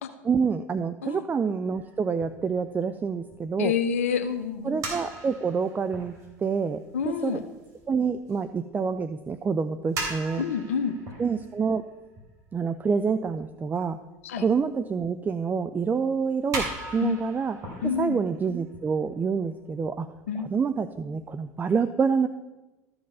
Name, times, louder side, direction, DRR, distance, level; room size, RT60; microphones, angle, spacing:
voice 1, 0.2-3.7 4.6-6.1 6.4-7.4 7.9-10.4 11.2-11.8 12.5-14.0 14.4-17.6 18.0-20.1 20.4-22.3, right 5 dB, 25° right, 12 dB, 0.5 m, -27 dB
sound 1, 1.7-9.3 9.6-12.8 13.3-13.4 14.2-14.7 15.0-15.1 15.5-15.6 16.1-16.2 16.5-19.5 19.8-19.9 20.4-20.5 20.7-21.6, right 2 dB, 50° right, 3.4 m, -39 dB
voice 2, 3.6-4.8 6.9-7.4 10.3-11.0 14.2-14.4 17.0-17.2 17.8-18.2 20.3-20.5, left 7 dB, 85° left, 8 dB, 0.7 m, -28 dB
13.5 x 5.3 x 5.5 m, 1.1 s
hypercardioid pair, 85°, 7 cm